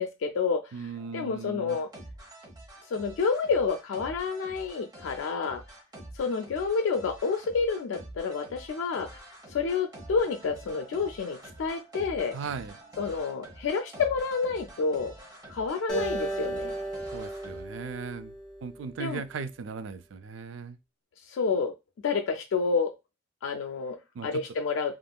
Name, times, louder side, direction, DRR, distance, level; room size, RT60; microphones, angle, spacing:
voice 1, 0.0-0.9 1.1-1.9 2.9-5.6 6.1-9.1 9.5-12.4 13.0-15.1 15.5-16.8 19.0-19.2 21.3-21.7 22.0-22.9 23.4-24.0 24.2-25.0, left 5 dB, 75° left, 0.3 m, -29 dB
voice 2, 0.7-1.8 12.3-12.8 17.1-18.3 18.6-20.8 24.2-24.4, right 5 dB, 75° right, 0.4 m, -38 dB
sound 1, 0.9-17.6, right 1 dB, 20° right, 1.0 m, -47 dB
Acoustic guitar, 15.9-19.2, right 1 dB, 5° left, 1.2 m, -35 dB
3.4 x 2.5 x 2.2 m
head